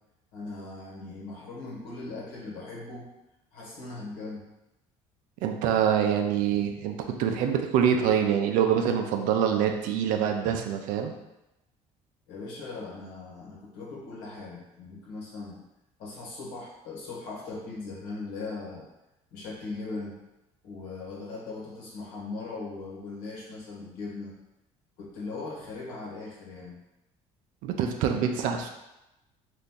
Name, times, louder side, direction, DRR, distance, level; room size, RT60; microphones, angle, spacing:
voice 1, 0.3-3.1 3.5-4.5 12.3-15.6 16.0-18.9 19.3-20.2 20.6-24.3 25.0-26.8, left 3 dB, 85° left, -4 dB, 1.2 m, -39 dB
voice 2, 5.4-11.1 27.6-28.7, right 8 dB, 75° right, 4 dB, 0.5 m, -25 dB
2.9 x 2.6 x 3.6 m, 0.94 s
supercardioid pair, 90°, 14 cm